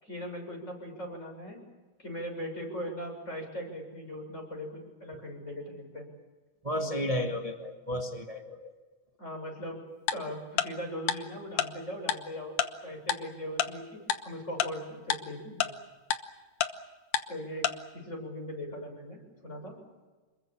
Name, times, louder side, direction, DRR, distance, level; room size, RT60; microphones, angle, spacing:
voice 1, 0.0-1.6 2.0-6.1 6.7-7.2 9.2-9.9 10.1-12.5 12.8-15.8 17.3-19.8, equal, 20° left, 2 dB, 7.2 m, -40 dB
voice 2, 6.6-8.7, equal, 50° right, 4 dB, 0.4 m, -33 dB
Tick-tock, 10.1-10.2 10.6-10.7 11.1-11.2 11.6-11.7 12.1-12.2 12.6-12.7 13.1-13.2 13.6-13.7 14.1-14.2 14.6-14.7 15.1-15.2 15.6-15.7 16.1-16.2 16.6-16.7 17.1-17.2 17.6-17.7, left 10 dB, 75° left, 2.5 m, -27 dB
27.5 x 22.0 x 7.2 m, 1.3 s
omnidirectional pair, 3.7 m